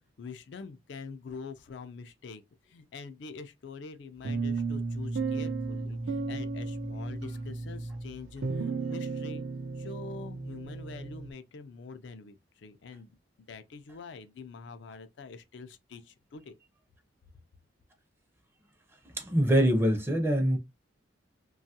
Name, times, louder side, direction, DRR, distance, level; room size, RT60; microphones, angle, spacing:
voice 1, 0.2-9.4 9.7-13.2 13.5-16.5, left 4 dB, 65° left, 0.4 m, -45 dB
sound 1, 4.2-11.3, right 4 dB, 80° right, 0.5 m, -34 dB
voice 2, 19.2-20.6, equal, 10° right, 0.5 m, -24 dB
2.9 x 2.3 x 2.7 m
head